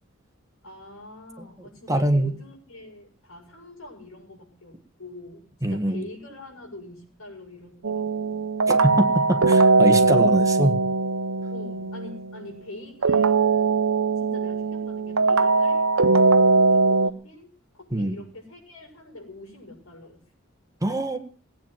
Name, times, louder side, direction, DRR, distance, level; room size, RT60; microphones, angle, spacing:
voice 1, 0.6-8.4 11.5-13.7 14.1-15.9 16.7-20.2, left 2 dB, 90° left, 1 dB, 6.9 m, -44 dB
voice 2, 1.9-2.3 5.6-6.0 8.7-10.8 17.9-18.2 20.8-21.2, right 1 dB, 15° right, 5 dB, 1.7 m, -23 dB
sound 1, 7.8-12.5 13.0-17.1, right 3 dB, 75° right, 0.8 m, -20 dB
19.0 x 9.3 x 7.6 m, 0.41 s
head